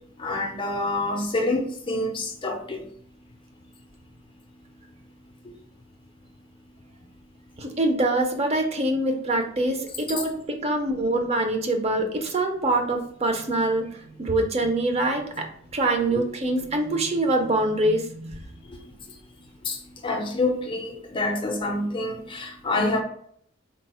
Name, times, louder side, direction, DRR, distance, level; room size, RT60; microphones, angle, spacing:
voice 1, 0.2-2.8 16.1-16.2 18.7-18.8 19.6-23.0, left 2 dB, 25° left, 3 dB, 0.4 m, -27 dB
voice 2, 7.6-15.5 15.7-18.4, right 2 dB, 30° right, 3 dB, 0.6 m, -24 dB
4.3 x 2.0 x 4.2 m, 0.63 s
head